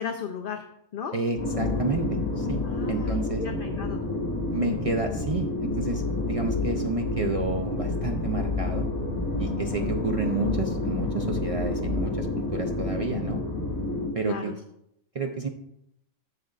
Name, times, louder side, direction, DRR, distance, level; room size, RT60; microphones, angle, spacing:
voice 1, 0.0-1.1 2.6-4.0 4.4-4.7 14.2-14.6, left 7 dB, 55° left, 4 dB, 0.7 m, -36 dB
voice 2, 1.1-2.6 2.9-3.4 4.5-8.9 9.4-13.4 14.1-14.5 15.1-15.5, right 3 dB, 55° right, 3 dB, 0.4 m, -30 dB
sound 1, 1.4-14.1, left 2 dB, 75° left, 3.3 m, -29 dB
11.0 x 7.6 x 2.4 m, 0.78 s
omnidirectional pair, 1.3 m